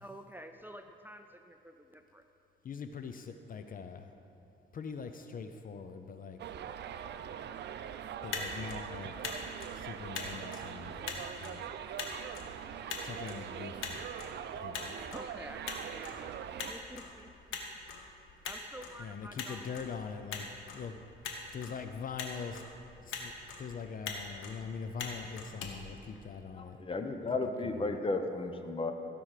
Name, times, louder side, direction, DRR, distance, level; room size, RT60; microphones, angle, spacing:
voice 1, 0.0-2.2 15.1-16.3 16.7-17.3 18.5-19.7, equal, 10° right, 6 dB, 0.4 m, -49 dB
voice 2, 2.6-4.1 4.7-6.4 8.2-9.1 9.7-11.7 13.0-14.0 14.6-15.2 19.0-21.0 21.5-22.6 23.0-23.3 23.6-27.1 27.6-28.0, left 6 dB, 45° left, 8 dB, 0.6 m, -43 dB
Subway metro underground, 6.4-16.7, right 8 dB, 60° right, 0.5 m, -42 dB
Motor vehicle (road), 8.1-26.7, left 4 dB, 90° left, 1.3 m, -44 dB
voice 3, 26.6-28.9, left 3 dB, 25° left, 6 dB, 0.9 m, -34 dB
15.5 x 6.0 x 4.9 m, 2.9 s
cardioid pair, 90°, 20 cm